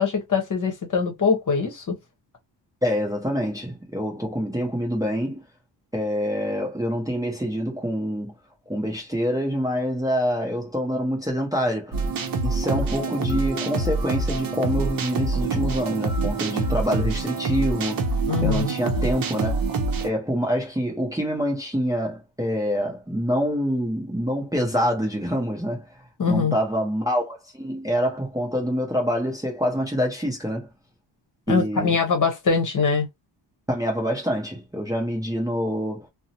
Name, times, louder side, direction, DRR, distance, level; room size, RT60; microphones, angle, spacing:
voice 1, 0.0-1.9 18.3-18.7 26.2-26.5 31.5-33.1, left 5 dB, 45° left, 0.9 m, -22 dB
voice 2, 2.8-5.4 5.9-8.3 8.7-12.1 12.4-18.1 18.4-19.6 20.0-25.9 26.3-30.7 31.5-32.0 33.7-36.1, equal, 10° right, 0.7 m, -26 dB
sound 1, 11.9-20.1, right 3 dB, 50° right, 0.7 m, -26 dB
2.6 x 2.1 x 2.7 m
wide cardioid pair, 135°, 44 cm